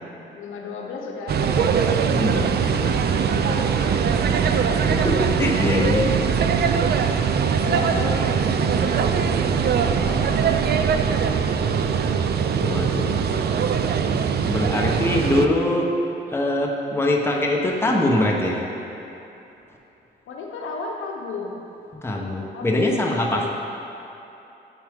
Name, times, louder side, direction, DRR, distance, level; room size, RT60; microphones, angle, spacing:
voice 1, 0.3-5.1 5.5-6.1 7.4-9.6 10.0-12.2 12.6-14.0 14.9-15.8 20.3-21.6 22.5-23.5, left 4 dB, 80° left, 0 dB, 0.8 m, -34 dB
sound 1, 1.3-15.5, right 6 dB, 55° right, 0.4 m, -21 dB
voice 2, 2.1-2.4 4.9-6.0 12.6-13.3 14.4-15.9 16.3-18.6 22.0-23.5, left 1 dB, 10° left, -1 dB, 1.0 m, -23 dB
9.1 x 4.4 x 3.5 m, 2.9 s
cardioid pair, 70°, 20 cm